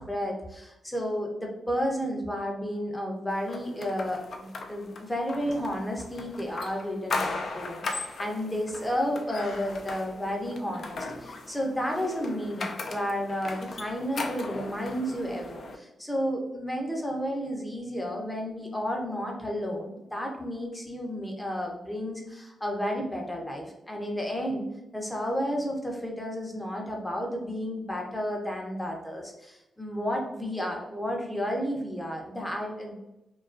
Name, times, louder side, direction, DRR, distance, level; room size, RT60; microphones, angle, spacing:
voice 1, 0.0-24.6 24.9-32.9, equal, 10° left, 0 dB, 0.6 m, -32 dB
door.echo, 3.5-15.7, left 3 dB, 60° left, 0.3 m, -37 dB
2.3 x 2.3 x 2.4 m, 0.92 s
cardioid pair, 90°, 0 cm